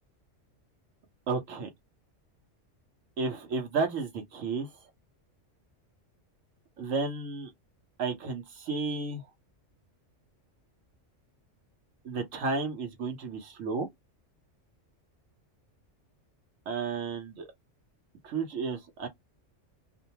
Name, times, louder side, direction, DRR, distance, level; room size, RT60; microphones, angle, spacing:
voice 1, 1.3-1.7 3.2-4.7 6.8-7.5 8.0-9.2 12.0-13.9 16.7-17.5 18.2-19.1, right 4 dB, 85° right, 1.1 m, -32 dB
2.6 x 2.1 x 2.8 m
omnidirectional pair, 1.3 m